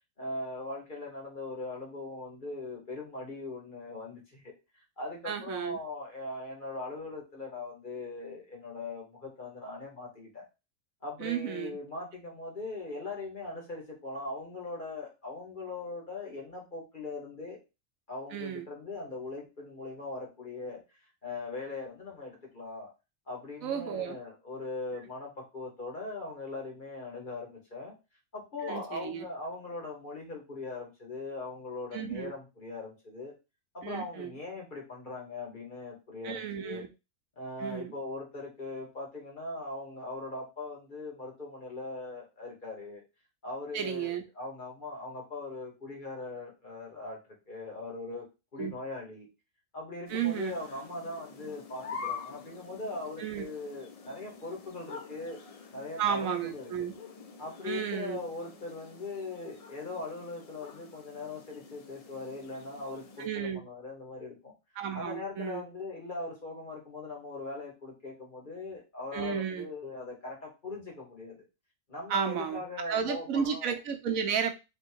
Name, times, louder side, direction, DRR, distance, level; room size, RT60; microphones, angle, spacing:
voice 1, 0.2-4.5 5.0-10.4 11.0-17.6 18.1-20.8 21.2-22.9 23.3-27.9 28.3-33.3 33.7-36.8 37.4-43.0 43.4-47.2 47.5-48.3 48.5-49.3 49.7-55.4 55.7-56.7 57.4-64.5 64.9-71.4 71.9-73.7, left 3 dB, 40° left, -1 dB, 1.5 m, -40 dB
voice 2, 5.3-5.8 11.2-11.8 18.3-18.6 23.6-24.2 28.6-29.2 31.9-32.3 33.8-34.3 36.2-36.9 37.6-37.9 43.7-44.2 48.6-48.7 50.1-50.5 53.2-53.4 56.0-56.9 57.6-58.2 63.2-63.6 64.8-65.6 69.1-69.7 72.1-72.6 72.9-74.5, right 7 dB, 85° right, 6 dB, 1.2 m, -33 dB
sound 1, 50.1-63.3, left 5 dB, 55° left, 0.4 m, -47 dB
3.5 x 2.9 x 4.5 m, 0.27 s
omnidirectional pair, 1.4 m